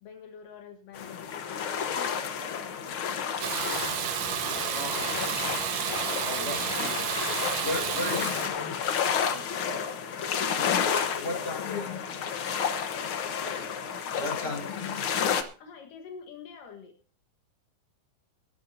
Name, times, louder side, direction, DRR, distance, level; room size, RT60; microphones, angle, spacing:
voice 1, 0.0-2.3 3.1-3.6 4.5-5.6 6.3-7.2 8.0-9.6 11.2-12.3 13.5-13.7 14.3-15.3 15.6-16.9, left 8 dB, 85° left, 5 dB, 3.1 m, -44 dB
sound 1, 0.9-15.4, left 7 dB, 60° left, 1.4 m, -31 dB
Water tap faucet / Bathtub (filling or washing), 3.4-8.5, right 9 dB, 65° right, 1.8 m, -31 dB
voice 2, 4.7-5.1 6.2-6.6 7.6-8.7 10.8-11.9 14.2-14.8, left 2 dB, 20° left, 1 dB, 6.0 m, -35 dB
20.0 x 12.5 x 2.7 m, 0.38 s
omnidirectional pair, 3.7 m